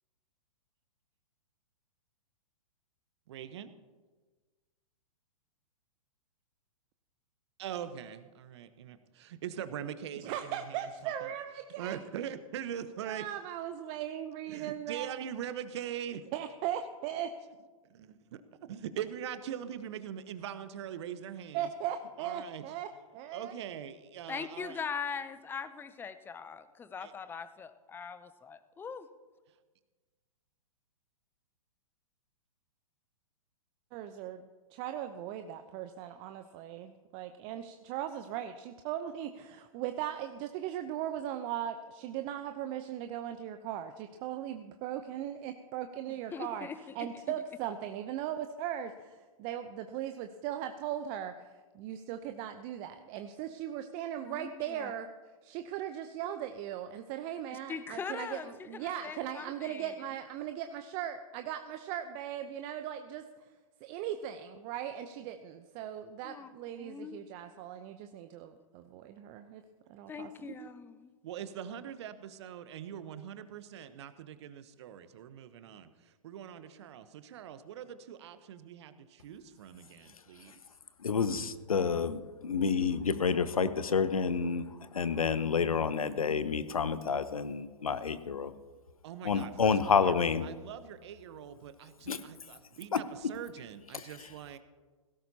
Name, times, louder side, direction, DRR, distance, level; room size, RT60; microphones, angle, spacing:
voice 1, 3.3-3.7 7.6-11.3 11.8-13.3 14.5-16.2 17.9-18.4 18.7-21.7 22.2-22.6 23.3-24.8 27.0-27.1 71.2-80.6 89.0-94.6, right 9 dB, 50° right, 12 dB, 1.0 m, -42 dB
voice 2, 10.2-12.0 13.0-15.2 16.3-17.3 21.5-22.9 23.1-23.5 33.9-34.4 34.7-46.7 46.9-55.1 55.4-63.5 63.8-69.6 69.9-70.7, right 10 dB, 30° right, 8 dB, 0.7 m, -38 dB
voice 3, 24.3-29.1 46.1-47.1 54.2-54.9 57.5-59.9 66.2-66.5 66.8-67.2 67.6-67.7 70.1-71.1, left 6 dB, 10° left, 13 dB, 0.6 m, -41 dB
voice 4, 81.0-88.5 89.2-90.4 92.1-92.2 92.9-93.0 93.9-94.0, left 6 dB, 75° left, 14 dB, 0.9 m, -29 dB
17.0 x 16.0 x 2.8 m, 1.3 s
figure-of-eight pair, 110°, 18 cm